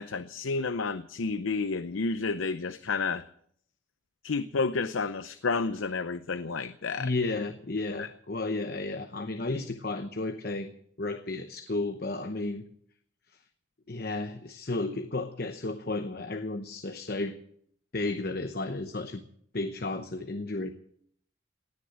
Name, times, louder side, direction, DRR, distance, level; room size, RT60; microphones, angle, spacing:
voice 1, 0.0-3.2 4.2-7.1 8.0-8.1, left 4 dB, 85° left, 12 dB, 0.6 m, -30 dB
voice 2, 7.0-10.7 11.0-12.6 13.9-17.4 17.9-19.2 19.5-20.7, left 2 dB, 50° left, 8 dB, 0.9 m, -33 dB
18.0 x 9.6 x 8.1 m, 0.65 s
head